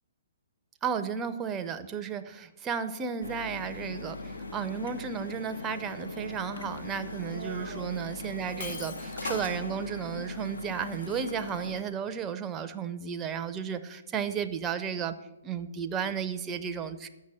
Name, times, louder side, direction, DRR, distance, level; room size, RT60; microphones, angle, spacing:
voice 1, 0.8-15.2 15.4-17.1, right 7 dB, 20° right, 9 dB, 0.5 m, -33 dB
sound 1, 3.2-11.8, left 3 dB, 80° left, 0.7 m, -39 dB
Human voice, 7.3-9.0, right 5 dB, 65° right, 0.7 m, -44 dB
Shatter, 8.6-9.6, left 5 dB, 60° left, 2.1 m, -42 dB
6.8 x 6.2 x 7.3 m, 0.99 s
figure-of-eight pair, 125°, 0 cm